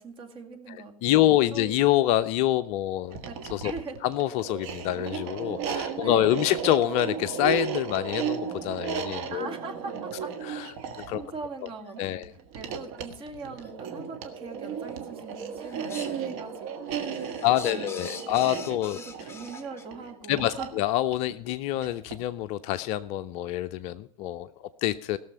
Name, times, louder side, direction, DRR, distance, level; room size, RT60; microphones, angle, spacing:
voice 1, 0.0-1.8 3.3-3.4 3.6-4.0 6.0-6.5 9.3-10.3 11.1-12.2 12.5-18.3 18.7-20.7, right 4 dB, 30° right, 5 dB, 2.0 m, -41 dB
voice 2, 1.0-3.2 3.5-3.7 4.0-9.5 10.5-10.7 11.1-11.2 12.0-12.3 17.4-19.0 20.3-25.2, left 14 dB, 35° left, 12 dB, 0.5 m, -26 dB
sound 1, 3.0-22.3, right 7 dB, 45° right, 1.6 m, -35 dB
sound 2, 3.8-3.9 4.7-4.8 5.4-5.5 6.0-6.1 6.8-7.0 7.9-8.0 8.6-8.8 9.3-9.4 10.1-10.3 11.0-11.1 11.8-11.9 12.6-12.7 13.6-13.7 14.6-15.0 15.3-16.2 16.6-19.8, left 4 dB, 15° left, 1.2 m, -45 dB
17.0 x 6.8 x 5.6 m, 0.67 s
figure-of-eight pair, 100°, 19 cm